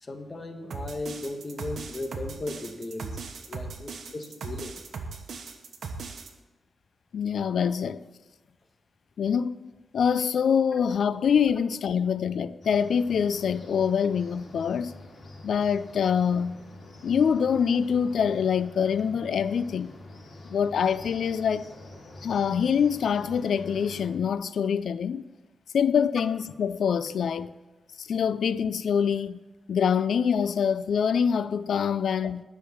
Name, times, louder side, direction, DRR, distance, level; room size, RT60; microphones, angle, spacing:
voice 1, 0.0-3.2 3.5-4.7, left 2 dB, 35° left, 1.3 m, -36 dB
sound 1, 0.7-6.3, right 4 dB, 80° right, 1.1 m, -38 dB
voice 2, 7.1-8.0 9.2-14.9 15.4-16.6 17.0-19.9 20.5-21.7 22.2-25.2 25.7-27.5 28.0-29.4 29.7-32.4, left 7 dB, 80° left, 0.4 m, -25 dB
sound 2, 12.6-24.1, left 2 dB, 60° left, 3.5 m, -46 dB
11.0 x 6.6 x 7.1 m
cardioid pair, 85°, 0 cm